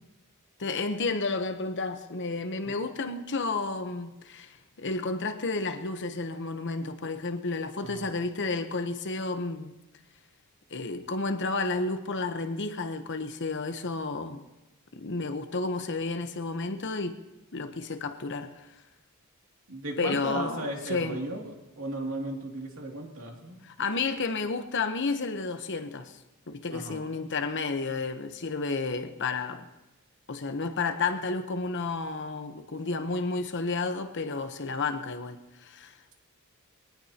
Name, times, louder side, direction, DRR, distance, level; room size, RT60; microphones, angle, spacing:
voice 1, 0.6-9.7 10.7-14.4 14.9-17.2 17.5-18.7 20.0-21.2 23.6-26.2 26.5-29.7 30.3-36.1, left 3 dB, 55° left, 8 dB, 1.0 m, -31 dB
voice 2, 19.7-21.4 21.8-23.6 26.7-27.0, right 2 dB, 70° right, 1 dB, 2.6 m, -35 dB
22.5 x 18.5 x 2.9 m, 1.0 s
head